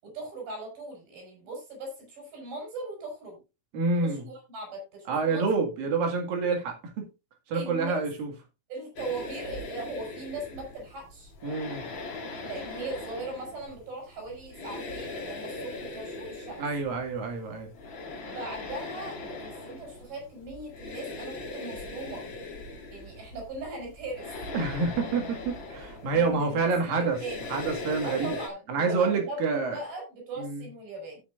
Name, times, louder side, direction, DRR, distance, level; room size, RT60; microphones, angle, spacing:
voice 1, 0.0-3.4 4.0-5.5 7.5-8.1 8.7-11.3 12.4-16.6 18.2-22.2 22.9-24.3 26.1-27.5 28.0-31.2, right 2 dB, 85° right, 6.6 m, -39 dB
voice 2, 3.7-4.3 5.1-7.1 7.5-8.3 11.4-11.9 16.6-17.7 24.5-27.2 27.5-28.4 28.7-29.8 30.4-30.7, right 4 dB, 70° right, 3.6 m, -28 dB
sound 1, 9.0-28.5, left 2 dB, 40° left, 2.1 m, -40 dB
15.5 x 6.5 x 2.5 m
omnidirectional pair, 4.3 m